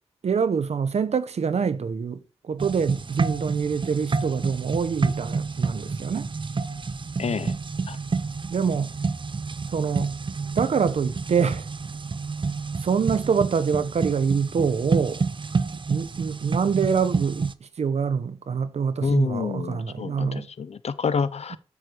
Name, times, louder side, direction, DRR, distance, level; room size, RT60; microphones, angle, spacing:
voice 1, 0.2-6.3 8.5-9.0 9.7-10.2 10.6-11.7 12.8-15.3 15.7-20.5 21.5-21.6, right 6 dB, 80° right, 1.2 m, -25 dB
sound 1, 2.6-17.5, right 4 dB, 50° right, 0.9 m, -29 dB
voice 2, 7.2-7.5 7.9-8.0 19.0-21.6, left 5 dB, 75° left, 1.0 m, -28 dB
13.0 x 6.7 x 4.7 m
cardioid pair, 55°, 11 cm